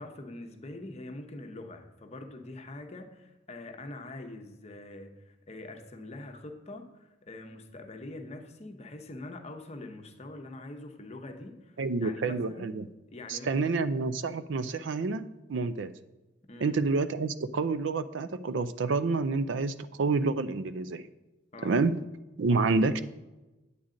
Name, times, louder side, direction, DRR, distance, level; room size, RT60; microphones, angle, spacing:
voice 1, 0.0-12.7 13.1-13.8 16.5-16.8 21.5-21.8, left 2 dB, 35° left, 6 dB, 0.8 m, -44 dB
voice 2, 11.8-12.9 13.3-15.9 16.6-21.1 21.6-22.0 22.4-23.0, right 3 dB, 70° right, 13 dB, 0.4 m, -28 dB
8.8 x 8.3 x 3.8 m, 1.1 s
head